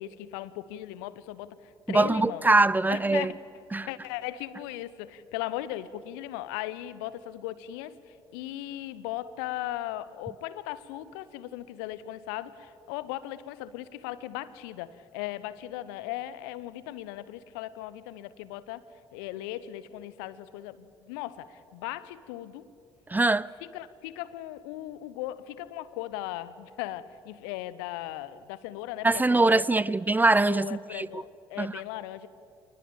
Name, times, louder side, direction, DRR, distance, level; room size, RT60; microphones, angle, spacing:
voice 1, 0.0-1.5 1.9-2.5 2.9-3.3 3.7-18.8 19.1-22.7 23.6-29.9 30.4-32.3, left 14 dB, 70° left, 0.9 m, -38 dB
voice 2, 1.9-3.3 3.7-3.9 23.1-23.5 29.0-31.2 31.6-31.7, right 2 dB, 15° right, 0.5 m, -23 dB
27.5 x 20.5 x 8.9 m
figure-of-eight pair, 50°, 13 cm